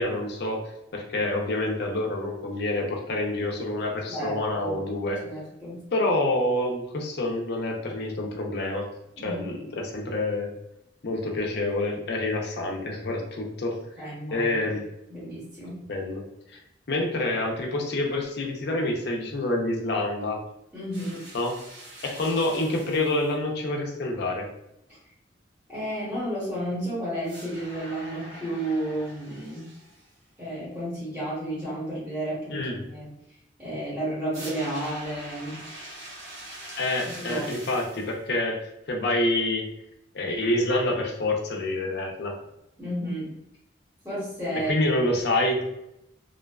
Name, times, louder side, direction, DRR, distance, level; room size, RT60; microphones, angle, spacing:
voice 1, 0.0-5.2 5.9-8.9 9.2-10.5 11.0-13.8 14.3-14.8 15.9-16.3 16.9-20.4 21.3-21.6 22.0-24.5 32.5-32.8 36.8-38.6 38.9-39.7 40.1-42.3 44.7-45.6, left 2 dB, 60° left, 0 dB, 0.5 m, -27 dB
voice 2, 4.1-4.8 5.2-5.8 9.2-9.5 14.0-14.5 15.1-15.8 20.7-21.2 24.9-25.0 25.7-29.7 30.4-33.1 33.6-35.6 37.1-37.5 42.8-43.3 44.0-44.7, right 1 dB, 10° right, -9 dB, 0.9 m, -32 dB
sound 1, 20.9-23.3 27.2-30.2 34.3-38.2, right 1 dB, 80° right, 1.3 m, -44 dB
2.4 x 2.2 x 2.3 m, 0.83 s
head